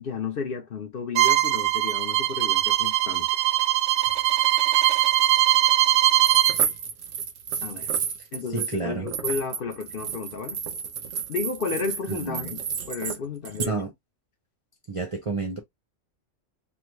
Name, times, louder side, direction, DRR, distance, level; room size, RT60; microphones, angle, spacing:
voice 1, 0.0-3.3 7.6-7.9 8.3-10.6 11.3-13.8, left 5 dB, 55° left, 0.9 m, -32 dB
Bowed string instrument, 1.1-6.6, right 15 dB, 70° right, 0.8 m, -21 dB
sound 1, 6.1-8.8 9.1-13.2 13.5-13.7, right 7 dB, 85° right, 1.1 m, -31 dB
voice 2, 8.5-9.1 12.2-12.6 13.6-13.9 14.9-15.6, right 3 dB, 40° right, 0.5 m, -30 dB
3.3 x 2.2 x 3.0 m
omnidirectional pair, 1.3 m